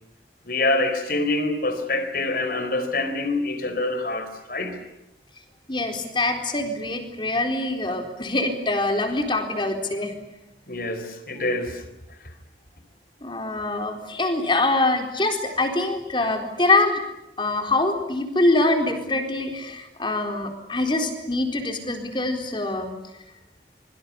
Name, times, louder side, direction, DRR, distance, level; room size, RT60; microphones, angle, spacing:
voice 1, 0.5-4.8 10.7-11.8, left 2 dB, 50° left, 9 dB, 4.2 m, -26 dB
voice 2, 5.7-10.1 13.2-17.0 17.4-22.9, left 2 dB, 25° left, 5 dB, 4.0 m, -24 dB
25.5 x 24.5 x 8.4 m, 0.90 s
head